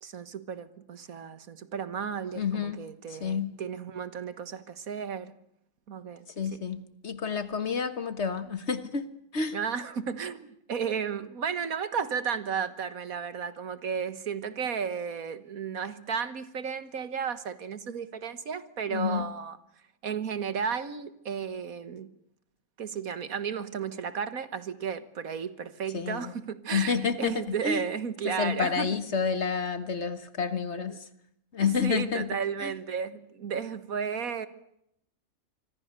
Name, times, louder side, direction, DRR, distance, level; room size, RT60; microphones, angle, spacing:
voice 1, 0.0-5.3 5.9-6.3 6.5-6.6 9.5-19.6 20.0-22.1 22.8-29.0 30.9-31.0 31.8-34.5, right 6 dB, 75° right, 1.8 m, -33 dB
voice 2, 2.4-2.8 3.1-3.6 6.4-9.0 9.3-9.6 18.9-19.3 25.9-26.3 26.7-27.8 28.2-31.1 31.5-32.3 32.6-32.7, left 6 dB, 50° left, 1.7 m, -29 dB
26.0 x 24.5 x 6.7 m
omnidirectional pair, 1.5 m